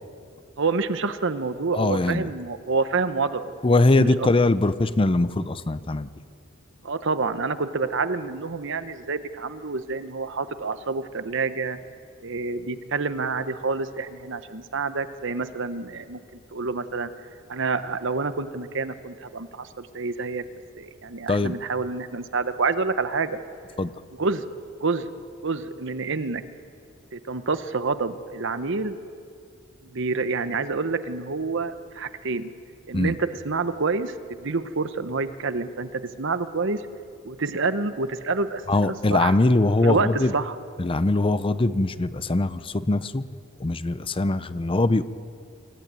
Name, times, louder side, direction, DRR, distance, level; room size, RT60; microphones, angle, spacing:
voice 1, 0.6-3.5 4.0-4.3 6.8-11.8 12.2-16.2 16.5-17.1 17.5-20.4 20.7-23.4 24.2-24.4 24.8-25.1 25.4-26.4 27.1-29.0 29.8-32.5 32.9-36.8 37.2-39.4 39.8-40.1 40.3-40.6, right 4 dB, 65° right, 11 dB, 1.0 m, -28 dB
voice 2, 1.7-2.3 3.6-6.1 21.3-21.5 23.8-23.9 32.9-33.1 38.7-40.3 40.8-43.3 43.6-45.0, left 2 dB, 25° left, 14 dB, 0.6 m, -22 dB
25.5 x 15.0 x 9.0 m, 2.4 s
head